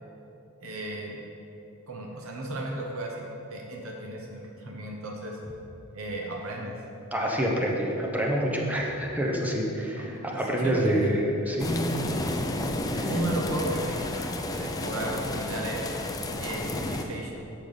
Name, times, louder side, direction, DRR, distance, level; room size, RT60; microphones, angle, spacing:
voice 1, 0.6-1.2 1.9-3.2 3.5-5.4 5.9-6.7 9.9-11.1 13.1-15.9 16.4-17.4, right 1 dB, 75° right, -1 dB, 1.0 m, -34 dB
voice 2, 7.1-12.0 12.9-13.1, equal, 10° right, -2 dB, 1.0 m, -27 dB
sound 1, 11.6-17.0, left 1 dB, 15° left, 0.5 m, -31 dB
8.6 x 7.0 x 4.0 m, 2.9 s
head